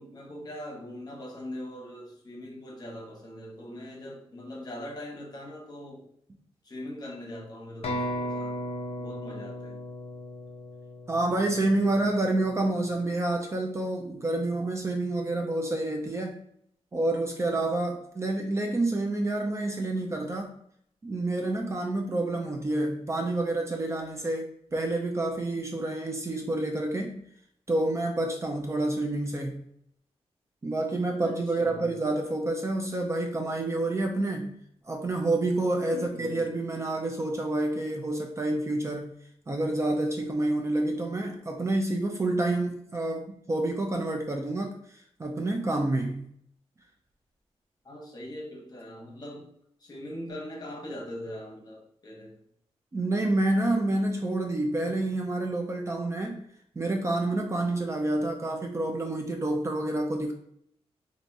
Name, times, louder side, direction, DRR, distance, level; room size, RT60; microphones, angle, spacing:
voice 1, 0.0-6.1 6.6-8.6 9.0-9.8 31.2-31.9 35.9-36.5 47.8-49.5 49.8-52.4, left 1 dB, 35° left, 0 dB, 0.9 m, -41 dB
sound 1, 7.8-11.6, equal, 65° left, 0.6 m, -35 dB
voice 2, 11.1-16.3 16.9-20.5 21.0-27.1 27.7-29.6 30.6-34.5 34.9-39.1 39.5-44.8 45.2-46.3 52.9-56.4 56.8-60.3, right 2 dB, 25° right, 2 dB, 0.4 m, -28 dB
3.2 x 2.5 x 2.6 m, 0.68 s
wide cardioid pair, 110°, 11 cm